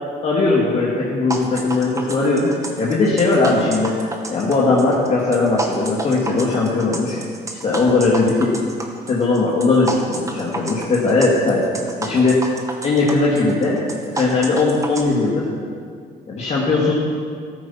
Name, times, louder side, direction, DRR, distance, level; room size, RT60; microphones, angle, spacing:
voice 1, 0.2-4.0 4.3-7.2 7.6-8.7 9.1-11.7 12.0-12.4 12.8-13.8 14.1-15.5 16.3-16.9, left 3 dB, 40° left, -5 dB, 2.6 m, -18 dB
sound 1, 1.3-15.0, right 2 dB, 20° right, 1.8 m, -30 dB
14.0 x 14.0 x 6.0 m, 2.1 s
cardioid pair, 125°, 17 cm